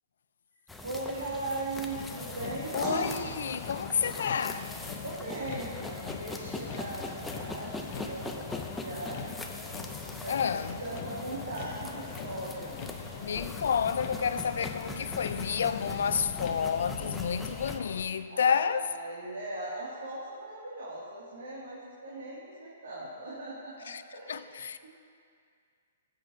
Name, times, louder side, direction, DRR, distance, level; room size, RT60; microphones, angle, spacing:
sound 1, 0.7-17.8, left 2 dB, 5° left, 0.5 m, -42 dB
voice 1, 0.8-2.8 5.0-9.4 10.1-12.7 18.3-24.5 24.8-24.9, right 2 dB, 90° right, 2.2 m, -39 dB
Motor vehicle (road), 1.9-18.0, left 7 dB, 40° left, 0.7 m, -42 dB
sound 2, 2.4-18.8, right 2 dB, 15° right, 1.5 m, -47 dB
voice 2, 2.7-4.7 10.3-10.8 13.2-18.8 23.9-24.0 24.3-24.9, left 7 dB, 75° left, 0.4 m, -30 dB
16.5 x 8.0 x 2.7 m
hypercardioid pair, 160°, 0 cm